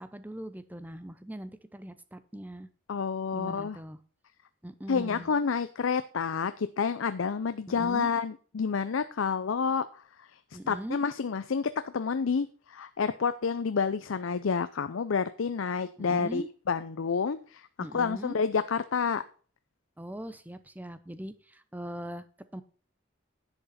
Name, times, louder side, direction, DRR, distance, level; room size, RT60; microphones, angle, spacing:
voice 1, 0.0-2.7 3.3-4.0 4.6-5.3 7.7-8.1 10.5-11.0 16.0-16.5 17.8-18.4 20.0-22.2 22.5-22.6, right 1 dB, 10° right, 12 dB, 0.7 m, -41 dB
voice 2, 2.9-3.8 4.9-9.9 10.7-17.7 17.9-19.2, left 5 dB, 85° left, 12 dB, 0.5 m, -29 dB
11.0 x 7.9 x 4.2 m, 0.40 s
head